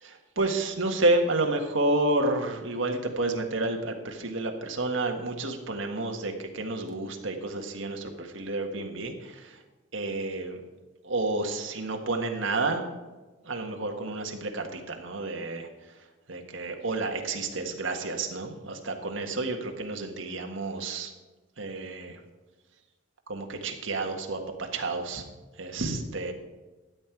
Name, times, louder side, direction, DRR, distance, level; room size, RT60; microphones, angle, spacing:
voice 1, 0.0-9.6 9.9-10.6 11.0-12.9 13.4-15.7 16.3-21.1 21.6-22.2 23.3-25.2 25.6-26.3, right 2 dB, 70° right, 3 dB, 1.6 m, -30 dB
13.0 x 9.3 x 4.7 m, 1.2 s
head